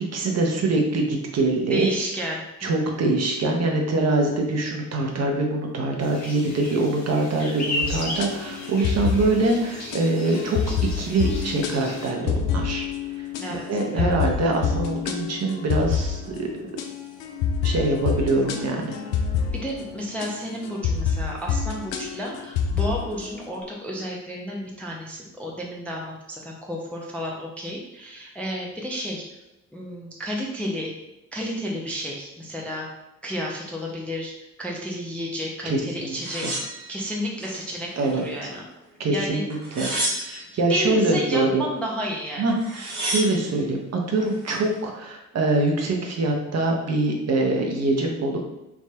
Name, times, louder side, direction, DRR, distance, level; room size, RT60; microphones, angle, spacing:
voice 1, 0.0-1.9 2.6-12.8 13.2-16.8 17.6-19.0 35.6-36.5 38.0-38.5 39.0-39.9 40.2-41.6 42.4-48.4, right 2 dB, 35° right, 1 dB, 0.7 m, -24 dB
voice 2, 1.7-3.0 13.4-13.6 13.9-14.2 19.6-29.2 29.7-30.9 31.3-32.9 33.2-34.3 34.6-36.5 36.9-38.6 39.1-39.4 40.7-42.6, equal, 5° left, -2 dB, 0.4 m, -31 dB
sound 1, 6.0-12.1, left 2 dB, 40° left, 1.2 m, -35 dB
sound 2, 7.8-23.6, left 6 dB, 70° left, 0.5 m, -28 dB
sound 3, 36.2-37.6 38.0-38.8 39.5-40.6 42.2-42.3 42.5-43.5 44.2-44.7, right 1 dB, 90° right, 0.7 m, -31 dB
3.4 x 2.5 x 2.3 m, 0.93 s
figure-of-eight pair, 45°, 44 cm